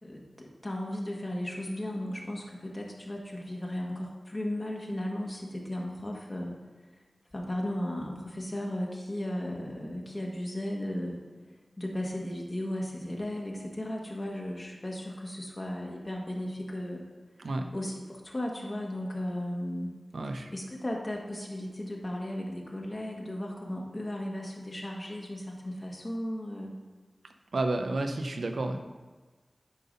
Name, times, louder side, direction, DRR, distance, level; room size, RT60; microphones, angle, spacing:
voice 1, 0.0-6.5 7.3-11.2 11.8-17.0 17.7-19.9 20.5-26.8, left 1 dB, 35° left, -1 dB, 1.5 m, -35 dB
voice 2, 17.4-17.7 20.1-20.5 27.5-28.8, right 2 dB, 85° right, 6 dB, 0.7 m, -31 dB
9.5 x 3.9 x 5.3 m, 1.3 s
wide cardioid pair, 50°, 0 cm